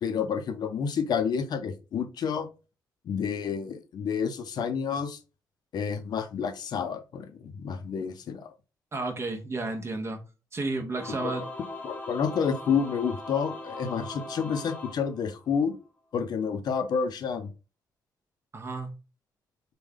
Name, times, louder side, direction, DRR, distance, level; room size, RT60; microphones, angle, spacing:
voice 1, 0.0-2.5 3.0-5.2 5.7-8.5 11.1-11.3 11.8-15.8 16.1-17.5, left 6 dB, 65° left, 0.5 m, -29 dB
voice 2, 8.9-10.2 10.5-11.5 18.5-18.9, right 2 dB, 35° right, 0.8 m, -32 dB
Singing / Musical instrument, 10.9-15.7, left 2 dB, 20° left, 0.7 m, -40 dB
3.4 x 2.2 x 3.5 m
cardioid pair, 80°, 8 cm